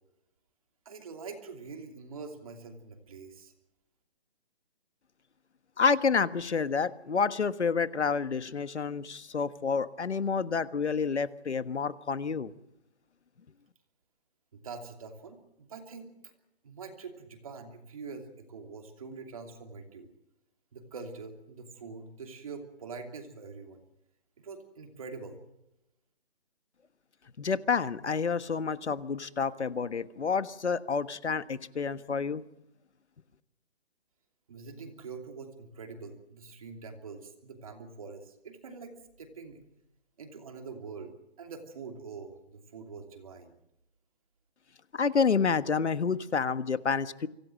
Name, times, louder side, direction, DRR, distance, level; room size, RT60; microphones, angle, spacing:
voice 1, 0.8-3.5 14.5-16.3 16.6-20.1 20.7-23.8 24.4-25.4 34.5-39.6 40.2-43.5, right 4 dB, 30° right, 5 dB, 2.9 m, -44 dB
voice 2, 5.8-12.5 27.4-32.4 44.9-47.3, left 5 dB, 90° left, 13 dB, 1.5 m, -29 dB
25.5 x 17.0 x 7.6 m, 0.88 s
hypercardioid pair, 175°, 33 cm